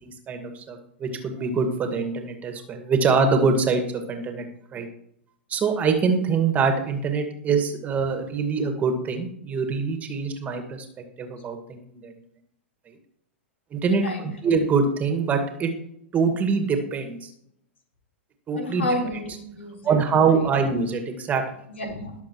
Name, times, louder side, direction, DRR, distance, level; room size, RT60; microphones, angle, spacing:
voice 1, 0.0-4.5 4.7-4.9 5.5-10.9 11.2-12.1 13.7-15.7 16.1-17.3 18.5-18.9 19.8-21.5, right 5 dB, 25° right, 4 dB, 2.1 m, -24 dB
voice 2, 13.9-14.2 18.6-20.0 21.7-22.2, left 1 dB, 75° left, 0 dB, 4.3 m, -30 dB
21.0 x 7.1 x 3.2 m, 0.73 s
figure-of-eight pair, 105°, 7 cm